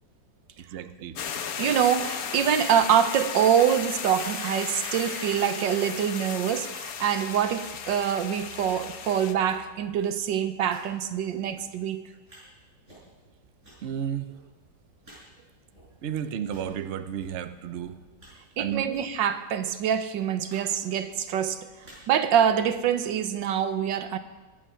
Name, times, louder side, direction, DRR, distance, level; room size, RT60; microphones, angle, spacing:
voice 1, 0.6-1.2 13.8-14.3 16.0-18.0 18.6-18.8, right 9 dB, 55° right, 10 dB, 0.8 m, -32 dB
sound 1, 1.2-9.3, left 7 dB, 60° left, 1.3 m, -35 dB
voice 2, 1.6-12.0 18.6-21.7 22.1-24.2, right 9 dB, 85° right, 10 dB, 1.5 m, -25 dB
sound 2, 4.1-5.6 8.8-8.9 9.5-9.6 10.6-10.8 11.4-11.5 12.3-12.4 12.8-13.1 13.6-13.7 14.3-14.4 14.6-14.7 15.0-15.2 15.7-15.8 16.4-16.7 17.2-17.3 17.8-18.3 18.9-19.1 19.4-19.5 19.8-19.9 20.5-20.6 20.8-21.2 21.6-22.0 22.5-22.8, right 1 dB, 40° right, 6.9 m, -45 dB
22.0 x 8.8 x 5.7 m, 1.2 s
omnidirectional pair, 1.9 m